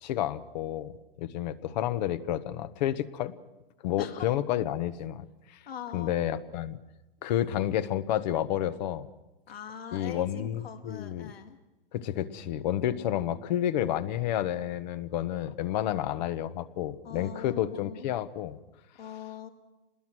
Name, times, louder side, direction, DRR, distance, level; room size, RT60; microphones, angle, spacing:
voice 1, 0.0-3.3 3.8-5.6 5.9-6.8 7.2-9.1 9.9-11.3 11.9-18.6, left 11 dB, 45° left, 14 dB, 1.2 m, -30 dB
voice 2, 5.7-6.2 9.5-11.6 17.0-18.1 19.0-19.5, left 8 dB, 80° left, 7 dB, 2.3 m, -42 dB
27.5 x 20.5 x 6.3 m, 1.0 s
hypercardioid pair, 140°, 30 cm